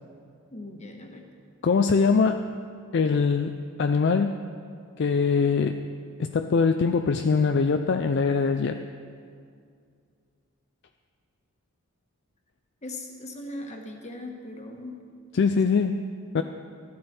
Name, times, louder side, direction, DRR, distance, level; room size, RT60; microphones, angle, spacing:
voice 1, 0.5-1.3 12.8-15.0, left 1 dB, 30° left, 3 dB, 1.3 m, -39 dB
voice 2, 1.6-2.5 2.9-4.4 5.0-5.8 6.2-8.8 15.3-16.0 16.3-16.4, left 5 dB, 55° left, 8 dB, 0.4 m, -23 dB
14.0 x 12.0 x 4.3 m, 2.3 s
head